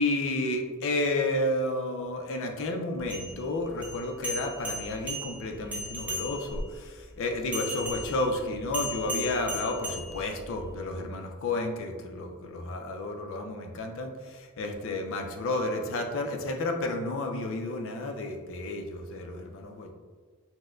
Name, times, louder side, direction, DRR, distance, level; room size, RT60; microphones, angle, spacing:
voice 1, 0.0-19.9, left 2 dB, 60° left, 4 dB, 0.4 m, -31 dB
sound 1, 3.0-6.7 7.5-10.7, equal, 5° right, 0.6 m, -37 dB
4.2 x 2.1 x 2.3 m, 1.5 s
head